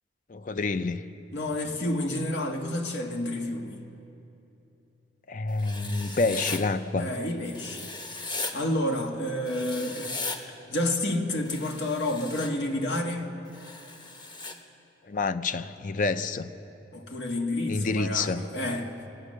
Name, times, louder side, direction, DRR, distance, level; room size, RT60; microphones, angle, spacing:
voice 1, 0.3-1.1 5.3-7.1 15.1-16.5 17.7-18.4, left 3 dB, 50° left, 12 dB, 0.5 m, -28 dB
voice 2, 1.3-3.9 7.0-7.9 8.5-10.4 10.7-13.3 16.9-19.0, left 1 dB, 85° left, 3 dB, 1.5 m, -30 dB
Writing, 5.6-6.6 7.5-8.5 9.5-10.4 11.5-12.5 13.5-14.5, left 3 dB, 25° left, 1.0 m, -37 dB
24.0 x 9.0 x 6.5 m, 2.9 s
head